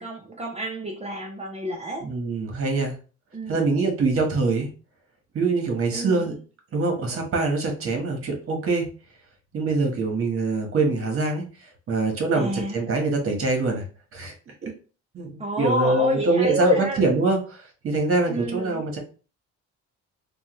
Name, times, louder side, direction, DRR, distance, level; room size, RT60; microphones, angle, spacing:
voice 1, 0.0-2.1 3.3-3.6 5.9-6.3 12.3-12.8 15.4-17.0 18.3-18.9, right 1 dB, 20° right, 0.6 m, -30 dB
voice 2, 2.0-2.9 3.5-4.7 5.3-6.3 6.7-8.9 9.5-11.4 11.9-13.8 14.1-14.3 14.6-14.7 15.1-17.4 17.8-19.0, right 3 dB, 45° right, 1.2 m, -23 dB
3.0 x 2.3 x 3.0 m
cardioid pair, 90°, 30 cm